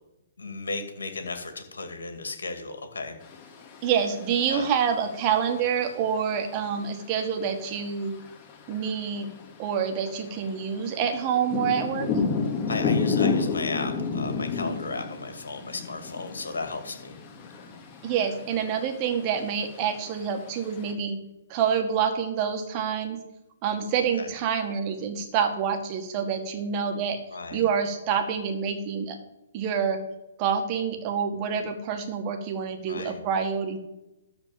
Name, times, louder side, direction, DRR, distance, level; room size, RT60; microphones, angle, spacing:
voice 1, 0.4-3.2 4.5-4.7 12.7-17.2 24.0-24.3 27.3-27.7 32.8-33.2, left 3 dB, 80° left, 6 dB, 2.4 m, -35 dB
sound 1, 3.2-20.9, left 5 dB, 25° left, 2.6 m, -32 dB
voice 2, 3.8-8.1 8.7-9.3 9.6-12.1 18.0-21.2 21.5-23.2 23.6-27.2 27.5-29.2 29.5-30.0 30.4-33.8, right 7 dB, 35° right, 5 dB, 1.9 m, -27 dB
13.0 x 4.4 x 7.5 m, 0.93 s
hypercardioid pair, 135°, 0 cm